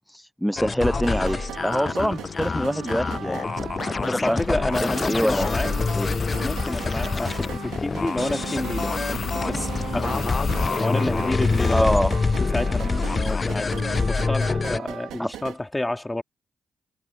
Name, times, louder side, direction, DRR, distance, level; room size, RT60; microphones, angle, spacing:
voice 1, 0.0-3.4 3.9-6.1 11.7-12.2 15.2-15.3, equal, ahead, 0.8 m, -26 dB
sound 1, 0.6-14.8, left 4 dB, 40° left, 0.4 m, -26 dB
sound 2, 0.8-15.6, right 11 dB, 90° right, 3.8 m, -37 dB
sound 3, 1.6-14.1, left 6 dB, 65° left, 1.7 m, -36 dB
voice 2, 4.0-5.7 6.4-8.9 9.4-10.3 10.8-12.1 12.5-13.7 14.1-16.2, left 1 dB, 20° left, 3.2 m, -29 dB
supercardioid pair, 50°, 0 cm